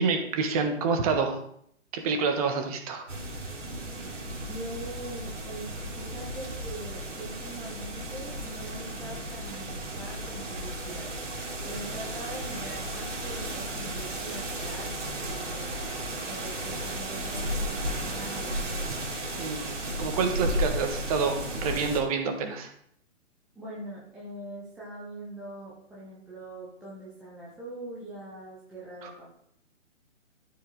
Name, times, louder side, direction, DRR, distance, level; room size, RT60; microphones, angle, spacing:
voice 1, 0.0-1.4 1.9-3.1 19.4-22.7 29.0-29.1, right 5 dB, 30° right, 5 dB, 1.4 m, -28 dB
sound 1, 3.1-22.0, right 1 dB, 65° right, 3.0 m, -34 dB
voice 2, 4.5-5.7 6.0-11.1 11.6-15.8 16.2-18.9 23.5-29.2, right 1 dB, ahead, -8 dB, 0.4 m, -42 dB
13.0 x 5.2 x 3.9 m, 0.69 s
figure-of-eight pair, 130°, 38 cm